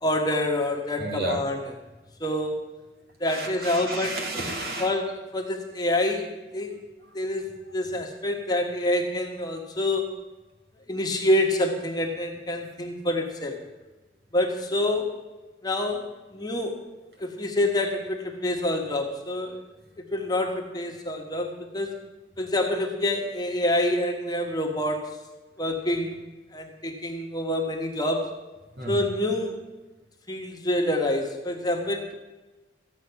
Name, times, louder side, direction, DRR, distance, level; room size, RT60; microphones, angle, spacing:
voice 1, 0.0-1.6 2.2-2.6 3.2-4.2 4.8-6.8 7.1-10.1 10.9-13.6 14.3-15.2 15.6-16.8 17.2-19.6 20.0-22.0 22.4-25.2 25.6-26.2 26.5-28.3 28.9-29.6 30.3-32.1, left 1 dB, 25° left, 2 dB, 1.5 m, -27 dB
voice 2, 1.0-1.4 3.2-4.9 28.8-29.0, right 1 dB, 60° right, 1 dB, 2.4 m, -32 dB
14.5 x 8.8 x 5.9 m, 1.2 s
head